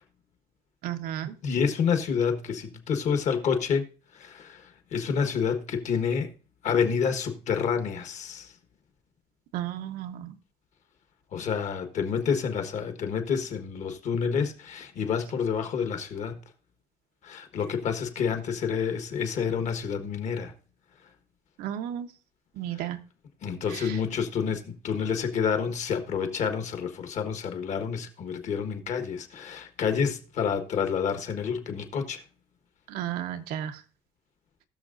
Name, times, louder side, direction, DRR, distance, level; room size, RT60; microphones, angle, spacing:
voice 1, 0.8-1.3 9.5-10.3 21.6-22.1 22.6-23.0 32.9-33.7, right 11 dB, 85° right, 1.0 m, -33 dB
voice 2, 1.4-3.9 4.1-6.3 6.6-8.5 11.3-16.4 17.2-20.5 22.7-22.9 23.4-32.2, left 6 dB, 55° left, 1.4 m, -28 dB
19.0 x 6.5 x 2.6 m
cardioid pair, 150°, 15 cm